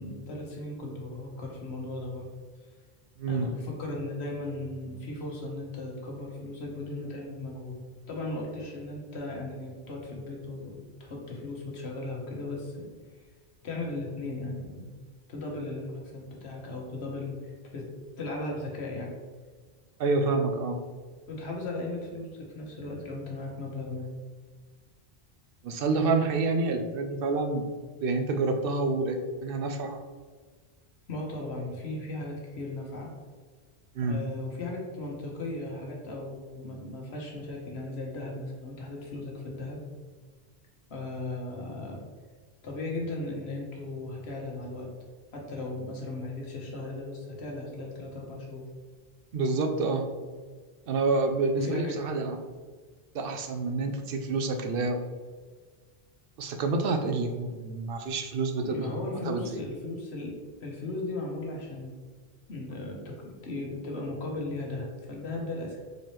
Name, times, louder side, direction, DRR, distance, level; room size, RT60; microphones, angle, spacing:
voice 1, 0.0-2.3 3.3-7.8 8.1-12.9 13.6-14.9 15.3-17.9 18.2-19.1 21.3-24.1 31.1-33.1 34.1-39.8 40.9-42.0 42.6-44.9 45.3-48.7 51.6-52.0 58.6-60.3 60.6-61.9 62.5-65.8, left 2 dB, 85° left, -1 dB, 1.3 m, -37 dB
voice 2, 3.2-3.5 20.0-20.8 25.6-27.7 28.0-30.0 33.9-34.2 49.3-50.1 50.9-52.4 53.1-55.0 56.4-59.0 59.2-59.6, right 3 dB, 65° right, 5 dB, 0.7 m, -28 dB
4.3 x 4.0 x 3.1 m, 1.5 s
omnidirectional pair, 1.1 m